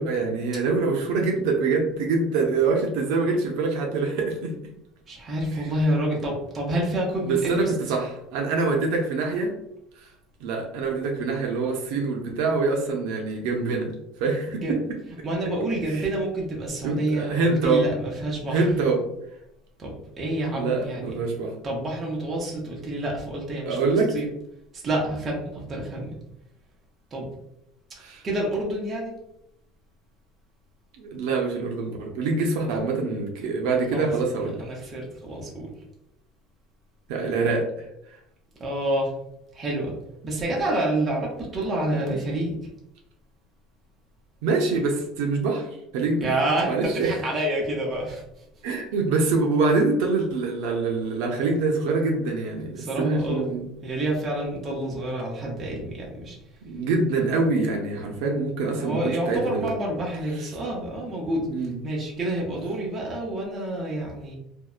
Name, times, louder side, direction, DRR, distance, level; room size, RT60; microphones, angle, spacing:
voice 1, 0.0-4.5 7.2-9.5 10.4-13.9 14.2-14.8 15.9-16.0 16.8-17.8 18.5-19.0 20.5-21.5 23.7-24.1 28.0-28.2 31.0-34.6 37.1-37.8 42.0-42.2 44.4-45.7 45.9-46.3 46.7-47.2 48.6-53.6 56.6-59.7 61.5-61.7, right 3 dB, 70° right, 1 dB, 0.5 m, -25 dB
voice 2, 5.1-7.7 14.6-14.7 15.2-18.7 19.8-21.1 21.6-24.3 24.7-26.2 27.1-27.3 28.2-29.1 33.9-34.1 34.4-35.7 38.6-39.1 39.5-39.9 40.2-42.6 46.2-48.2 52.8-53.4 53.8-56.4 58.8-61.5 61.8-64.4, right 1 dB, 20° right, -2 dB, 0.6 m, -28 dB
2.6 x 2.1 x 2.3 m, 0.80 s
cardioid pair, 165°, 0 cm